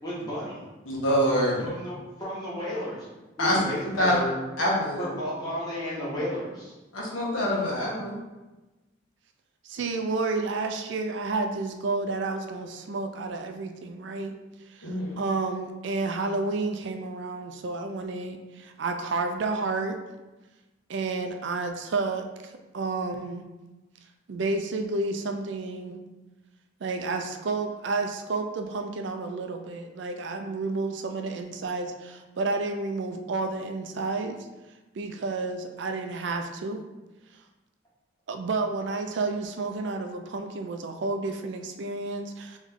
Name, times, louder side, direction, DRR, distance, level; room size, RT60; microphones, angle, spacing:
voice 1, 0.0-0.6 1.6-3.1 3.4-4.4 5.0-6.7, left 1 dB, 20° left, -8 dB, 1.4 m, -33 dB
voice 2, 0.8-1.7 3.4-3.6 3.9-4.2 4.6-5.1 6.9-8.2 14.8-15.2, equal, 85° left, -5 dB, 1.4 m, -25 dB
voice 3, 9.6-14.3 14.7-20.0 20.9-23.4 24.3-26.0 26.8-34.4 34.9-36.8 38.3-42.6, right 3 dB, 65° right, 5 dB, 0.4 m, -31 dB
3.7 x 3.1 x 3.5 m, 1.1 s
head